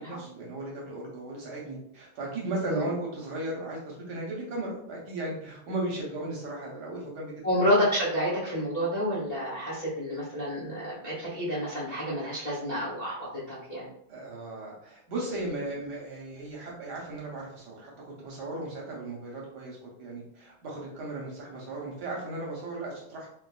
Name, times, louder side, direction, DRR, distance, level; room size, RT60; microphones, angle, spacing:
voice 1, 0.0-7.4 14.1-17.9 18.2-23.3, right 2 dB, 65° right, -3 dB, 1.1 m, -36 dB
voice 2, 7.4-13.9, equal, 50° left, -8 dB, 0.4 m, -29 dB
3.4 x 2.5 x 2.3 m, 0.70 s
omnidirectional pair, 2.3 m